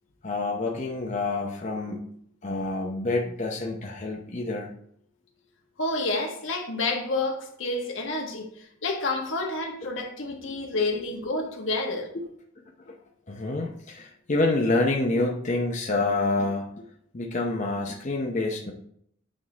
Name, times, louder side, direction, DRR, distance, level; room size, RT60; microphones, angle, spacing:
voice 1, 0.2-2.1 2.4-4.7 12.1-12.2 12.9-13.0 13.3-16.7 17.1-18.7, left 2 dB, 40° left, 0 dB, 0.7 m, -27 dB
voice 2, 5.8-12.1, left 2 dB, 80° left, 2 dB, 1.4 m, -29 dB
8.6 x 3.7 x 3.9 m, 0.67 s
head